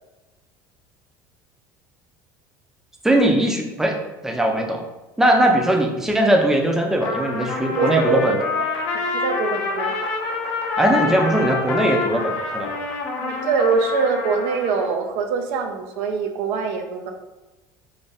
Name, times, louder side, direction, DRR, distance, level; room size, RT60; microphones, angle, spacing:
voice 1, 3.0-4.0 4.2-4.8 5.2-8.4 10.8-12.8, right 1 dB, 5° right, 1 dB, 0.5 m, -20 dB
Trumpet, 7.0-14.9, left 4 dB, 70° left, 0.5 m, -27 dB
voice 2, 7.8-8.7 8.9-9.9 13.2-17.1, right 5 dB, 75° right, 4 dB, 0.4 m, -23 dB
3.2 x 2.2 x 2.7 m, 1.1 s
supercardioid pair, 90°, 10 cm